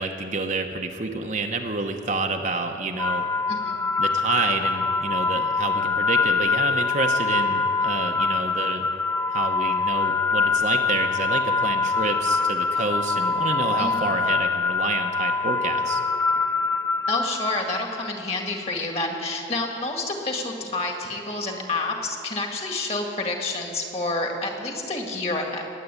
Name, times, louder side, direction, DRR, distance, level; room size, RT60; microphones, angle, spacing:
voice 1, 0.0-3.3 4.0-8.9 9.3-16.0, right 3 dB, 40° right, 4 dB, 0.9 m, -28 dB
sound 1, 3.0-18.1, left 4 dB, 10° left, 0.3 m, -24 dB
voice 2, 17.1-25.6, left 2 dB, 35° left, 2 dB, 1.9 m, -28 dB
20.0 x 8.5 x 8.4 m, 2.9 s
head